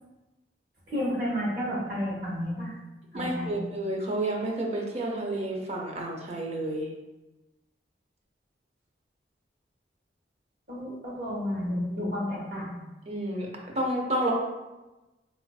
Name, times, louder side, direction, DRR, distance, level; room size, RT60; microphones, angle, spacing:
voice 1, 0.9-2.7 3.1-3.6 10.7-12.7, equal, 50° right, -4 dB, 0.9 m, -31 dB
voice 2, 3.1-6.9 13.1-13.5 13.7-14.3, right 1 dB, 35° right, -1 dB, 0.5 m, -30 dB
4.0 x 2.4 x 2.3 m, 1.1 s
head